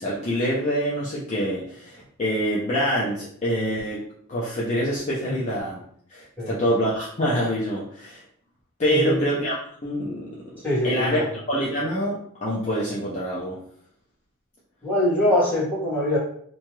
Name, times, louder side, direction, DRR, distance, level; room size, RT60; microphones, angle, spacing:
voice 1, 0.0-4.0 4.3-5.8 6.1-8.2 8.8-10.3 10.8-11.2 11.5-13.6, equal, 35° left, -6 dB, 0.5 m, -25 dB
voice 2, 8.9-9.3 10.6-11.3 14.8-16.2, left 1 dB, 10° left, -10 dB, 1.4 m, -23 dB
2.8 x 2.2 x 3.0 m, 0.63 s
head